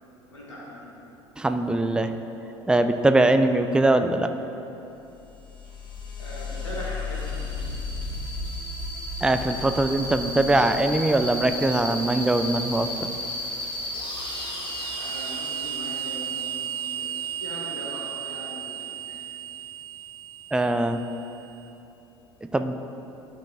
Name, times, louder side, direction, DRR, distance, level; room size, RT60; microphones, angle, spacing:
voice 1, 0.3-0.9 6.2-7.7 15.0-19.2, equal, 80° left, -5 dB, 1.6 m, -40 dB
voice 2, 1.4-2.1 2.7-4.3 9.2-12.9 20.5-21.0 22.4-22.7, right 2 dB, 5° right, 8 dB, 0.4 m, -22 dB
sound 1, 5.2-21.5, right 1 dB, 35° left, 1.4 m, -33 dB
11.5 x 5.4 x 2.6 m, 3.0 s
figure-of-eight pair, 70°, 15 cm